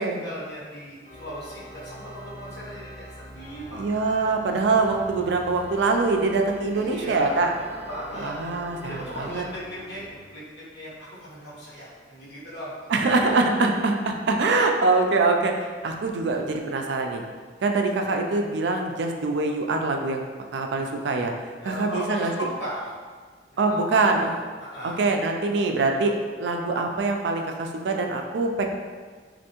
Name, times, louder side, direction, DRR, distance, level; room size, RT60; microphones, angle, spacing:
voice 1, 0.0-3.9 6.7-8.3 8.8-13.0 21.6-22.9 23.6-25.1, equal, 70° left, -9 dB, 1.4 m, -37 dB
Organ, 1.0-10.2, equal, 35° left, 0.7 m, -44 dB
voice 2, 3.7-7.5 8.2-9.4 12.9-17.2 17.6-20.2 20.5-21.3 21.6-22.3 23.6-24.3 24.8-26.1 26.4-28.7, right 3 dB, 65° right, 3 dB, 0.3 m, -24 dB
3.3 x 2.6 x 2.9 m, 1.5 s
head